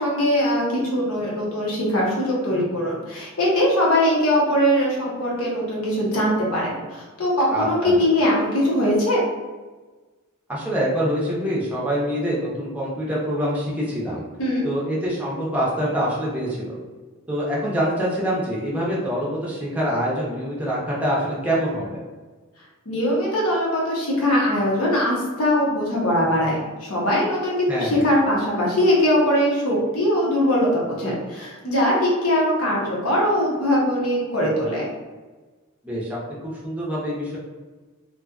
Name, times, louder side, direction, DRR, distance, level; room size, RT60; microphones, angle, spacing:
voice 1, 0.0-9.2 14.4-14.6 22.9-34.9, equal, 70° left, -4 dB, 0.9 m, -21 dB
voice 2, 7.5-8.0 10.5-14.2 14.6-16.8 17.3-22.0 27.7-28.0 35.8-37.4, equal, 5° right, -6 dB, 0.6 m, -25 dB
2.6 x 2.4 x 2.3 m, 1.3 s
head